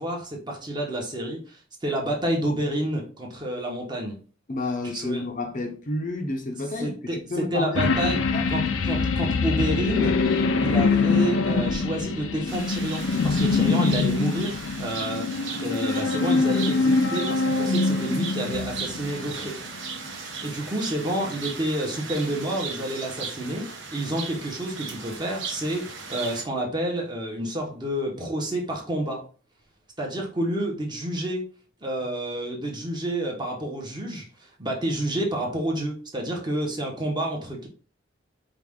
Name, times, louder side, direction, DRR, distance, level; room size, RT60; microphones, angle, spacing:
voice 1, 0.0-4.2 4.8-5.2 6.8-8.2 8.5-10.2 10.6-19.6 20.4-29.2 30.0-31.4 31.8-37.7, right 1 dB, 25° right, 1.0 m, -29 dB
voice 2, 4.5-8.4, left 2 dB, 45° left, 0.7 m, -31 dB
sound 1, 7.7-19.5 19.9-20.0, left 4 dB, 90° left, 0.4 m, -24 dB
sound 2, 12.5-26.4, right 5 dB, 75° right, 1.0 m, -37 dB
4.8 x 2.4 x 3.6 m
head